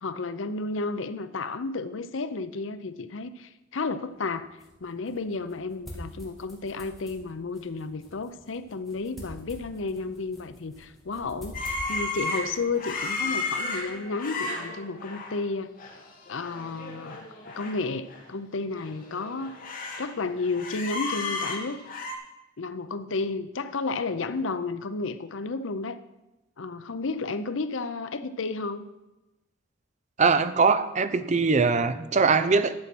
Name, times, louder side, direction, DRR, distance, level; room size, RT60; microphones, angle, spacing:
voice 1, 0.0-4.5 4.8-15.7 16.3-17.2 17.5-19.6 20.0-21.8 22.6-26.0 26.6-28.9, left 3 dB, 80° left, 12 dB, 0.7 m, -32 dB
sound 1, 4.1-14.0, equal, ahead, 2.5 m, -47 dB
sound 2, 11.5-15.4 15.8-16.0 16.3-17.8 18.1-18.2 18.8-20.1 20.4-22.2, left 3 dB, 45° left, 1.7 m, -33 dB
voice 2, 30.2-32.7, right 4 dB, 35° right, 12 dB, 0.6 m, -22 dB
11.5 x 7.4 x 6.1 m, 0.99 s
head